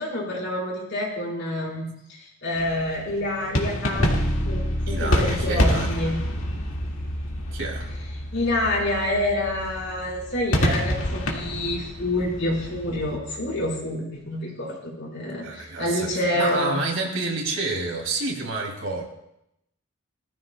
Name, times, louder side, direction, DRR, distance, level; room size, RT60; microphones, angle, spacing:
voice 1, 0.0-1.9 2.4-4.1 4.4-4.6 4.9-6.2 8.3-16.8, left 1 dB, 60° left, -3 dB, 4.0 m, -27 dB
sound 1, 2.5-13.2, equal, 80° left, 2.0 m, -29 dB
Bass guitar, 4.0-13.8, equal, 20° left, 1.3 m, -32 dB
voice 2, 4.9-6.0 7.5-7.9 15.4-19.0, right 3 dB, 65° right, 1 dB, 2.5 m, -29 dB
19.0 x 13.5 x 2.2 m, 0.80 s
head